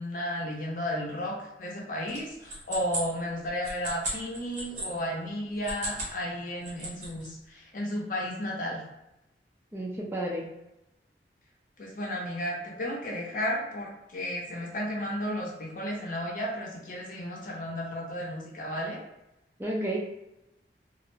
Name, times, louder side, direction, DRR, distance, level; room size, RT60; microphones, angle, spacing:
voice 1, 0.0-8.8 11.8-19.0, equal, 45° left, -2 dB, 0.6 m, -33 dB
sound 1, 2.1-4.9 5.5-6.2 6.5-7.3, right 2 dB, 45° right, 0.7 m, -36 dB
voice 2, 9.7-10.4 19.6-20.0, right 1 dB, 10° right, -4 dB, 0.3 m, -31 dB
2.4 x 2.1 x 3.1 m, 0.90 s
head